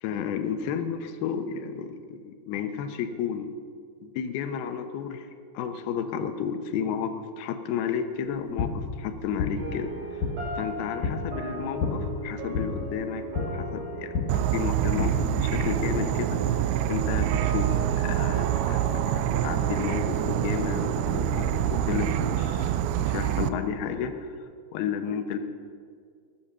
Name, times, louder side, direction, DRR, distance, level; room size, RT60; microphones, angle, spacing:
voice 1, 0.0-3.5 4.0-5.3 5.5-10.3 10.6-13.2 13.5-17.7 18.0-25.4, left 7 dB, 75° left, 8 dB, 2.6 m, -32 dB
sound 1, 8.3-16.0, left 4 dB, 60° left, 2.8 m, -32 dB
sound 2, 9.6-22.9, right 3 dB, 60° right, 4.2 m, -37 dB
Insect / Frog, 14.3-23.5, right 11 dB, 85° right, 2.7 m, -26 dB
22.0 x 8.8 x 6.7 m, 2.1 s
omnidirectional pair, 5.1 m